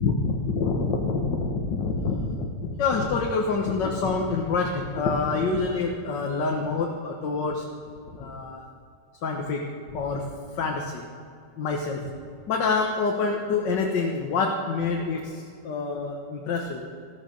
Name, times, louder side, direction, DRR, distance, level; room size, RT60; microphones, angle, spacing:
voice 1, 0.0-7.6 8.1-8.6 9.2-9.6 9.9-10.2 10.6-11.0 11.6-12.0 12.5-16.8, left 4 dB, 85° left, 1 dB, 1.9 m, -26 dB
14.0 x 13.5 x 5.3 m, 2.4 s
omnidirectional pair, 1.9 m